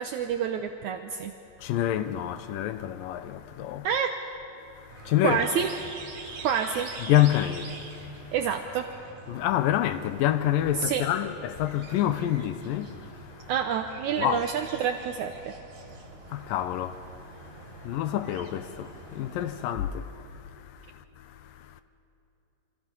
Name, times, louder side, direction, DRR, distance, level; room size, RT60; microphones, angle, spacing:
voice 1, 0.0-1.3 3.8-4.2 5.2-5.7 6.4-6.9 8.3-8.9 10.8-11.1 13.5-15.5, right 7 dB, 75° right, 1.9 m, -28 dB
voice 2, 1.6-3.9 4.7-5.5 6.3-6.5 7.0-8.3 9.3-13.5 14.2-14.4 16.2-21.8, left 12 dB, 85° left, 2.5 m, -28 dB
sound 1, 4.9-19.7, right 4 dB, 60° right, 3.9 m, -45 dB
27.0 x 26.0 x 5.4 m
omnidirectional pair, 4.0 m